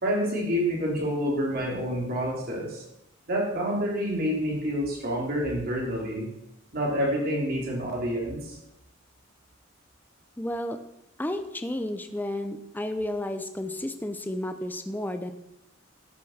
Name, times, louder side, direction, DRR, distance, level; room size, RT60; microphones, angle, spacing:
voice 1, 0.0-2.8 3.3-6.3 6.7-8.6, equal, 45° right, -3 dB, 3.4 m, -28 dB
voice 2, 10.4-10.8 11.2-15.3, left 1 dB, 10° left, 8 dB, 0.6 m, -32 dB
12.5 x 7.5 x 6.5 m, 0.84 s
head